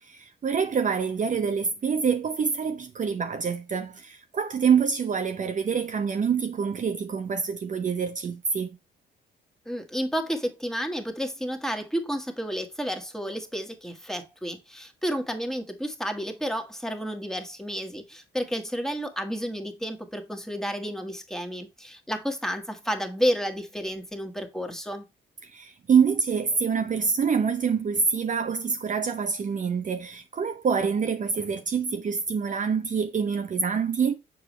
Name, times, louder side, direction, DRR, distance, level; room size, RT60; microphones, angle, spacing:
voice 1, 0.0-8.8 25.4-34.1, right 6 dB, 40° right, 0.7 m, -26 dB
voice 2, 9.6-25.0, equal, ahead, 1.6 m, -31 dB
7.0 x 4.7 x 3.1 m
cardioid pair, 90°, 20 cm